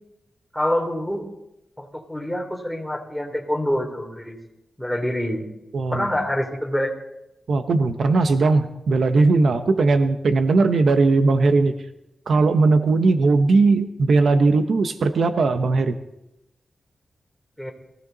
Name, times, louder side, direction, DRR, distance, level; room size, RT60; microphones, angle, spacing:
voice 1, 0.5-1.2 1.8-4.4 4.8-5.4 5.9-6.9 17.6-17.7, left 1 dB, ahead, 1 dB, 3.3 m, -26 dB
voice 2, 5.7-6.1 7.5-11.7 12.3-16.0, right 3 dB, 75° right, 8 dB, 1.0 m, -18 dB
22.5 x 16.0 x 4.1 m, 0.89 s
wide cardioid pair, 100°, 0 cm